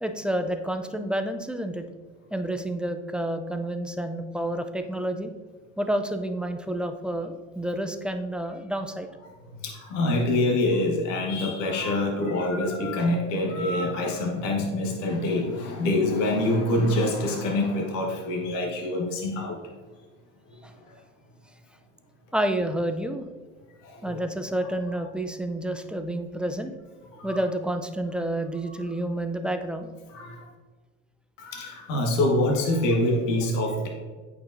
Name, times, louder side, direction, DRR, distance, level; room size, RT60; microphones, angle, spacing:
voice 1, 0.0-1.9 2.3-5.3 5.8-9.1 20.6-20.7 22.3-23.2 24.0-26.7 27.2-29.9, right 1 dB, 5° right, 6 dB, 0.5 m, -29 dB
voice 2, 9.6-19.6 23.8-24.2 27.1-27.3 28.7-28.8 30.1-30.5 31.4-33.9, left 1 dB, 80° left, 0 dB, 1.4 m, -25 dB
8.6 x 5.6 x 2.6 m, 1.4 s
hypercardioid pair, 80°, 37 cm